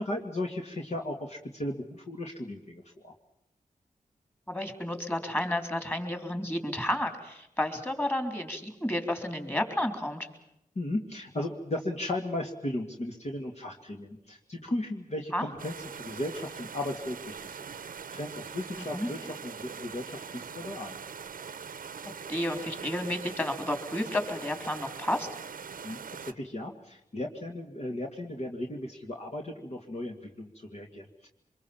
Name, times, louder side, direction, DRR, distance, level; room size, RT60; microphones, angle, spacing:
voice 1, 0.0-3.1 10.8-17.6 17.9-21.0 25.8-31.3, left 1 dB, 50° left, 1 dB, 2.4 m, -36 dB
voice 2, 4.5-10.3 15.3-15.4 18.8-19.1 22.3-25.3, left 1 dB, 15° left, 7 dB, 3.9 m, -31 dB
sound 1, 15.6-26.3, right 6 dB, 80° right, 0.9 m, -42 dB
24.5 x 22.5 x 7.4 m, 0.82 s
cardioid pair, 55°, 14 cm